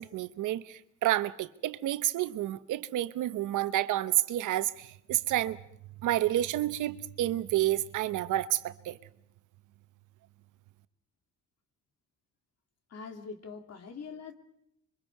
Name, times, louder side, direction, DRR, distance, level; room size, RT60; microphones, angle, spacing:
voice 1, 0.0-5.6 6.0-9.0, right 14 dB, 80° right, 1.0 m, -29 dB
voice 2, 12.9-14.3, left 5 dB, 55° left, 2.7 m, -43 dB
27.0 x 24.0 x 4.8 m
cardioid pair, 90°, 30 cm